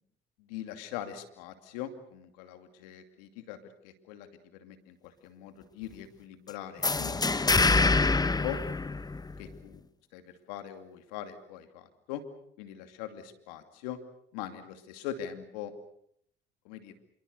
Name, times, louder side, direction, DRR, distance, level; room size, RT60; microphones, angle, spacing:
voice 1, 0.4-3.6 3.8-7.2 9.4-9.8 10.1-12.2 12.6-14.0 14.3-15.7 16.6-16.9, left 11 dB, 85° left, 8 dB, 2.6 m, -42 dB
sound 1, 6.8-9.5, left 3 dB, 20° left, 1.2 m, -25 dB
27.0 x 24.0 x 6.7 m, 0.69 s
supercardioid pair, 65°, 21 cm